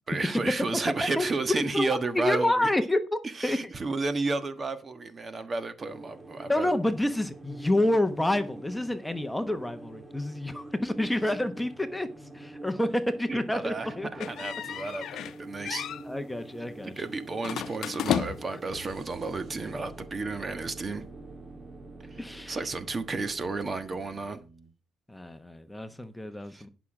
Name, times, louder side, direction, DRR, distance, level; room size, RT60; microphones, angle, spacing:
voice 1, 0.0-2.7 3.2-6.7 13.3-15.9 17.0-21.0 22.0-24.4 26.5-26.6, right 3 dB, 35° right, 1.3 m, -32 dB
voice 2, 1.5-3.6 6.5-14.2 16.0-16.9 22.2-22.6 25.1-26.7, left 1 dB, 10° left, 1.0 m, -28 dB
sound 1, 5.8-23.6, right 1 dB, 15° right, 2.0 m, -46 dB
sound 2, 14.2-15.4 15.6-16.0 17.4-18.6, left 10 dB, 75° left, 0.8 m, -32 dB
sound 3, 18.6-24.7, right 4 dB, 55° right, 1.7 m, -49 dB
11.0 x 6.1 x 4.9 m
cardioid pair, 90°, 0 cm